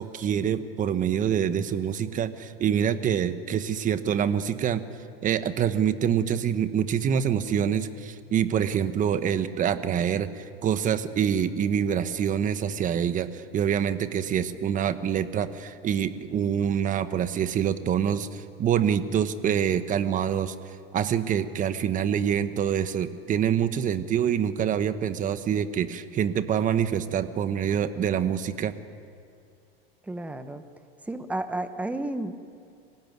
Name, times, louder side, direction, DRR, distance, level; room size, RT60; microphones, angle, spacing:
voice 1, 0.0-4.8 5.2-20.5 20.9-28.7, right 8 dB, 25° right, 11 dB, 1.2 m, -26 dB
voice 2, 30.1-30.6 31.1-32.4, right 1 dB, 5° right, 9 dB, 1.2 m, -32 dB
26.0 x 18.0 x 9.4 m, 2.5 s
supercardioid pair, 135°, 30 cm